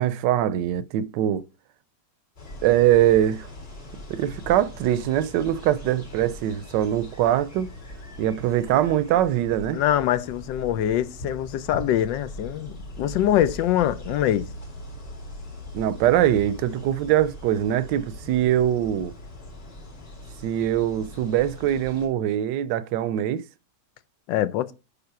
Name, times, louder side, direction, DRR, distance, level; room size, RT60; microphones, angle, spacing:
voice 1, 0.0-1.4 2.6-3.5 4.1-7.7 8.2-9.8 15.7-19.1 20.4-23.4, right 11 dB, 80° right, 1.2 m, -22 dB
sound 1, 2.4-22.1, left 1 dB, 65° left, 4.3 m, -41 dB
voice 2, 9.7-14.5 24.3-24.7, left 11 dB, 85° left, 1.3 m, -24 dB
9.5 x 3.6 x 5.8 m
omnidirectional pair, 1.9 m